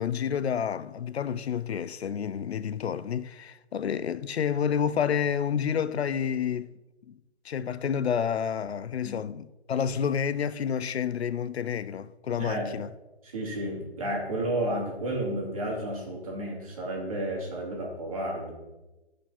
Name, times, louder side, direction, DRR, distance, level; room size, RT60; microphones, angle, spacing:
voice 1, 0.0-6.7 7.1-7.2 7.4-12.9, left 8 dB, 75° left, 0.5 m, -29 dB
voice 2, 12.4-12.7 13.2-18.5, right 1 dB, 35° right, 2.7 m, -32 dB
11.5 x 5.1 x 5.7 m
hypercardioid pair, 180°, 32 cm